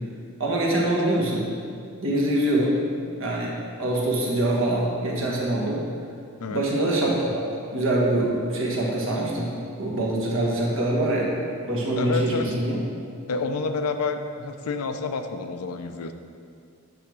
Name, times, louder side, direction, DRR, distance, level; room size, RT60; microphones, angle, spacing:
voice 1, 0.4-1.4 2.0-2.9 3.2-5.8 6.5-7.4 7.7-9.5 9.8-11.3 11.7-12.8, right 1 dB, 60° right, -4 dB, 1.4 m, -24 dB
voice 2, 11.9-12.5 13.3-16.1, left 4 dB, 85° left, 7 dB, 0.5 m, -28 dB
8.4 x 3.5 x 6.1 m, 2.3 s
head